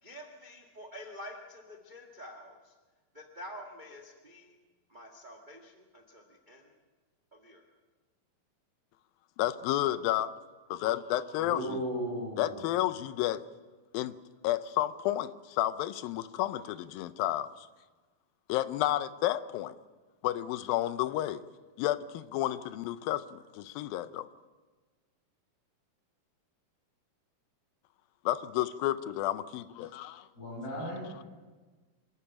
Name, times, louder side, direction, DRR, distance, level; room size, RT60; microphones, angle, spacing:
voice 1, 0.0-2.7 3.1-4.5 4.9-6.7 7.3-7.6, equal, 30° right, 2 dB, 0.8 m, -48 dB
voice 2, 9.4-10.3 10.7-11.8 12.4-13.4 13.9-14.1 14.4-17.5 18.5-19.7 20.2-21.4 21.8-24.3 28.3-30.3, left 14 dB, 80° left, 14 dB, 2.5 m, -31 dB
voice 3, 11.4-12.6 30.3-31.2, equal, 25° left, -1 dB, 7.5 m, -36 dB
26.5 x 13.0 x 8.9 m, 1.3 s
omnidirectional pair, 4.2 m